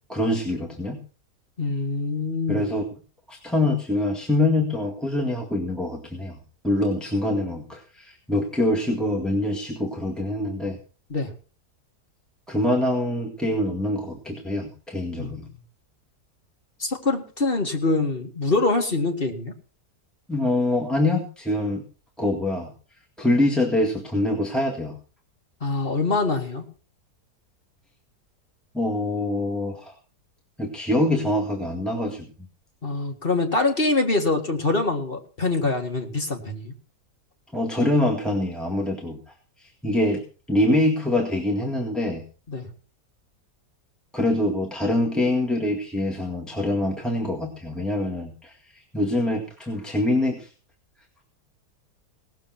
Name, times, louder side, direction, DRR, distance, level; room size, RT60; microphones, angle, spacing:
voice 1, 0.1-1.0 2.5-2.8 3.3-6.4 6.6-10.8 12.5-15.5 20.3-21.8 22.2-22.7 23.2-25.0 28.7-29.9 30.6-32.3 37.5-39.2 39.6-42.2 44.1-48.5 48.9-50.5, left 1 dB, ahead, 0 dB, 1.9 m, -24 dB
voice 2, 1.6-2.7 11.1-11.3 15.2-15.6 16.8-19.5 25.6-26.6 32.8-36.7 42.5-42.7, left 3 dB, 35° left, 2 dB, 2.1 m, -24 dB
18.0 x 7.4 x 5.9 m, 0.39 s
omnidirectional pair, 1.8 m